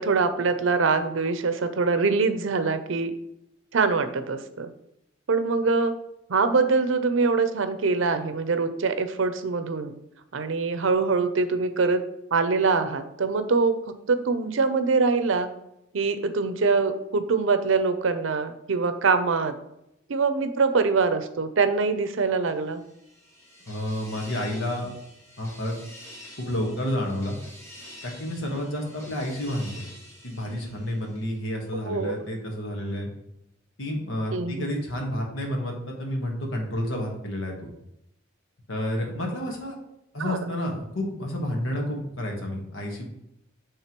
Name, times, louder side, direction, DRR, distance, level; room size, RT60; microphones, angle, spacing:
voice 1, 0.0-3.1 3.7-4.7 5.3-5.9 6.3-9.9 10.3-12.0 12.3-13.8 14.1-15.5 15.9-19.5 20.1-22.8 29.0-29.1 31.9-32.2 34.3-34.7 40.2-40.4, right 4 dB, 80° right, 10 dB, 0.6 m, -24 dB
sound 1, 22.4-31.5, left 1 dB, 15° left, 1.2 m, -48 dB
voice 2, 23.7-24.9 25.4-25.8 26.4-27.4 28.0-29.8 30.2-33.1 33.8-37.7 38.7-39.7 40.1-43.1, left 1 dB, 80° left, 1 dB, 1.4 m, -30 dB
9.2 x 3.5 x 3.0 m, 0.83 s
head